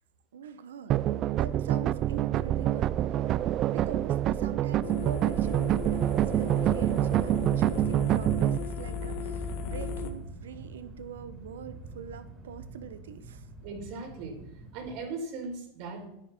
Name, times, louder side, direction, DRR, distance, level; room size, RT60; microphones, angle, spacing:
voice 1, 0.3-1.0 1.4-3.0 3.7-13.4, right 7 dB, 85° right, 11 dB, 1.1 m, -43 dB
sound 1, 0.9-8.6, right 12 dB, 45° right, 0.4 m, -26 dB
sound 2, 2.1-15.0, right 2 dB, 30° right, 3.7 m, -48 dB
sound 3, 4.8-10.1, left 4 dB, 60° left, 2.0 m, -36 dB
voice 2, 13.6-14.4 14.7-16.1, right 3 dB, 60° right, 1 dB, 5.0 m, -38 dB
14.0 x 10.0 x 4.5 m, 0.81 s
hypercardioid pair, 105°, 0 cm